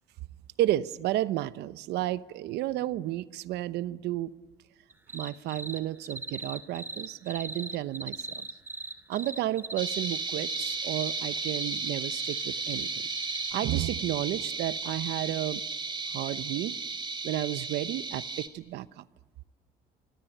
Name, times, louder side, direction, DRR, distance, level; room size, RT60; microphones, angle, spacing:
voice 1, 0.6-4.3 5.1-8.5 9.1-12.9 13.5-15.6 16.1-16.8 17.2-19.0, right 14 dB, 80° right, 15 dB, 0.9 m, -32 dB
sound 1, 4.9-5.8 6.0-13.5, right 3 dB, 10° right, 2.7 m, -38 dB
sound 2, 9.8-18.5, right 4 dB, 30° right, 2.5 m, -34 dB
26.0 x 24.5 x 9.1 m, 1.2 s
cardioid pair, 110°, 17 cm